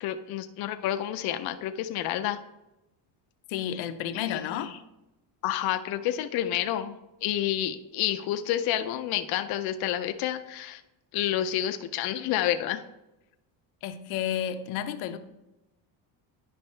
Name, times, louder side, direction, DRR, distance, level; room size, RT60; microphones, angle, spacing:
voice 1, 0.0-2.4 4.1-4.4 5.4-10.8 11.1-12.8, left 12 dB, 55° left, 8 dB, 0.5 m, -29 dB
voice 2, 3.5-4.7 13.8-15.2, left 10 dB, 85° left, 8 dB, 0.8 m, -31 dB
10.0 x 5.2 x 3.2 m, 0.94 s
cardioid pair, 145°, 47 cm